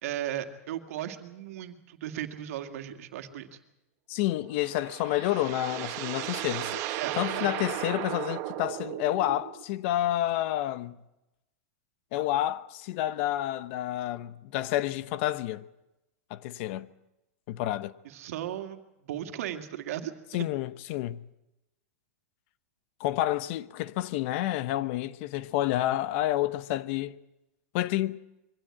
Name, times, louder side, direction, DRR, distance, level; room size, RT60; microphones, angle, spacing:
voice 1, 0.0-3.6 7.0-7.5 18.0-20.5, right 11 dB, 65° right, 2.1 m, -36 dB
voice 2, 4.1-11.0 12.1-15.6 16.3-16.9 17.5-17.9 20.3-21.2 23.0-27.1 27.7-28.2, left 14 dB, 50° left, 0.9 m, -29 dB
sound 1, 4.4-9.6, right 14 dB, 40° right, 1.7 m, -35 dB
23.0 x 16.0 x 8.8 m
hypercardioid pair, 135°, 8 cm